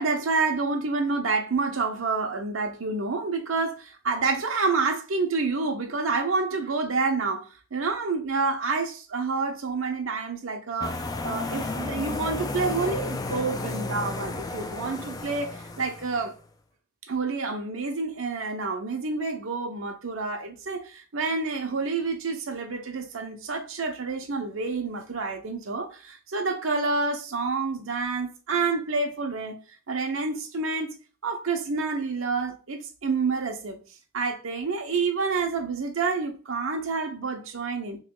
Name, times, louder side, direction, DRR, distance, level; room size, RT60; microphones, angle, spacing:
voice 1, 0.0-16.3 17.0-29.6 29.9-31.0 31.2-33.8 34.1-38.0, right 4 dB, 70° right, 0.7 m, -28 dB
sound 1, 10.8-16.3, left 3 dB, 20° left, 0.3 m, -33 dB
3.1 x 2.9 x 3.7 m
head